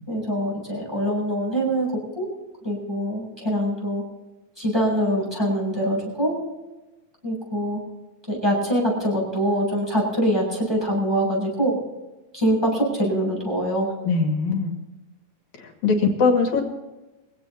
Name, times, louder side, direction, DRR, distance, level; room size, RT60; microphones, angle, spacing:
voice 1, 0.1-2.3 2.6-4.0 4.6-6.4 7.2-7.8 8.3-11.8 12.3-13.9, equal, 5° right, -4 dB, 7.3 m, -24 dB
voice 2, 14.0-14.7 15.6-16.6, left 4 dB, 65° left, 3 dB, 3.6 m, -21 dB
23.5 x 17.0 x 2.9 m, 1.1 s
omnidirectional pair, 3.7 m